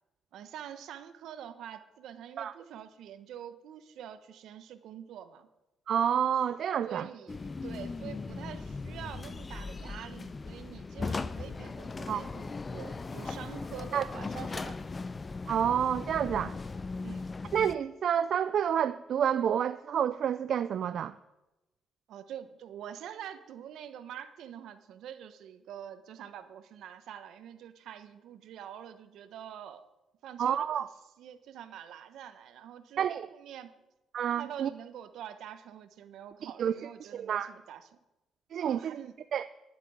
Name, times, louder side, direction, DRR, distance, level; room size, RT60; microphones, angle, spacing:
voice 1, 0.3-5.5 6.8-14.8 17.0-17.2 22.1-29.8 30.2-30.7 31.2-33.7 34.4-37.9 38.6-39.1, right 9 dB, 80° right, 11 dB, 1.1 m, -45 dB
voice 2, 5.9-7.1 12.1-12.2 13.9-14.1 15.5-16.5 17.5-21.1 30.4-30.9 33.0-33.3 34.1-34.7 36.4-37.5 38.5-39.0 39.3-39.5, right 9 dB, 65° right, 13 dB, 0.4 m, -29 dB
sound 1, 7.3-17.8, left 3 dB, 30° left, 0.6 m, -38 dB
11.0 x 8.4 x 9.6 m, 1.0 s
cardioid pair, 90°, 0 cm